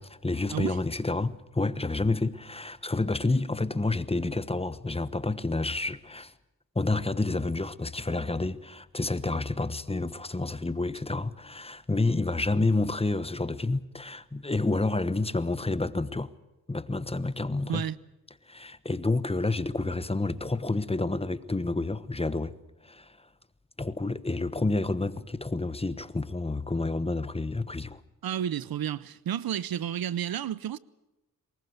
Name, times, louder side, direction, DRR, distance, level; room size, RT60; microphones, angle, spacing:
voice 1, 0.0-6.3 6.7-16.3 16.7-17.9 18.5-22.5 22.8-23.3 23.8-28.0, left 2 dB, 15° left, 1.1 m, -29 dB
voice 2, 17.6-18.0 28.2-30.8, right 10 dB, 70° right, 0.8 m, -31 dB
23.5 x 20.5 x 8.1 m
cardioid pair, 75°, 38 cm